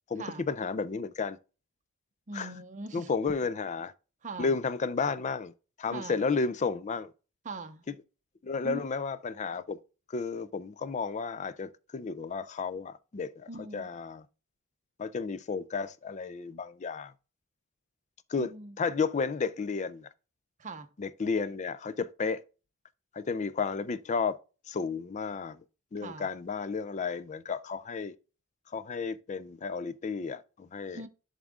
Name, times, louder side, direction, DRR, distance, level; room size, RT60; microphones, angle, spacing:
voice 1, 0.1-1.4 2.3-2.5 2.9-3.9 4.4-5.5 5.8-7.1 7.9-8.0 8.4-9.8 10.1-14.3 15.0-17.1 18.3-18.5 18.8-20.1 21.0-22.4 23.1-24.4 24.7-25.6 25.9-28.1 28.7-31.0, left 5 dB, 35° left, 0.4 m, -32 dB
voice 2, 2.3-3.1 4.2-4.5 5.9-6.2 7.4-7.8 8.6-8.8 13.5-13.9 18.4-18.8 20.6-20.9 26.0-26.3 30.9-31.1, right 3 dB, 35° right, 0.7 m, -41 dB
10.5 x 3.7 x 3.6 m
head